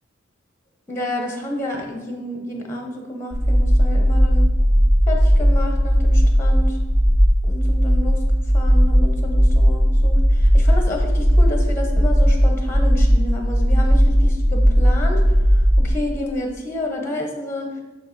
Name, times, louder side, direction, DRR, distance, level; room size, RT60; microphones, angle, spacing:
voice 1, 0.9-4.5 5.1-6.8 7.4-8.2 8.5-17.7, left 1 dB, 10° left, 1 dB, 0.8 m, -30 dB
sound 1, 3.3-15.9, equal, 30° right, 2.1 m, -16 dB
6.3 x 4.5 x 4.5 m, 1.1 s
head